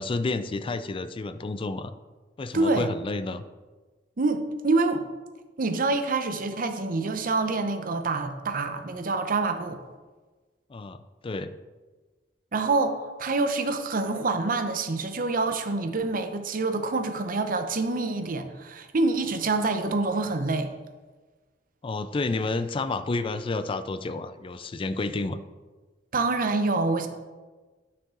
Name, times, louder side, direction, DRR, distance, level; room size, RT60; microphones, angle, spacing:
voice 1, 0.0-1.9 2.4-3.4 10.7-11.5 21.8-25.4, left 3 dB, 30° left, 12 dB, 0.4 m, -30 dB
voice 2, 2.5-2.9 4.2-5.0 5.6-9.8 12.5-20.7 26.1-27.1, right 3 dB, 50° right, 8 dB, 0.7 m, -26 dB
9.8 x 6.0 x 3.8 m, 1.3 s
head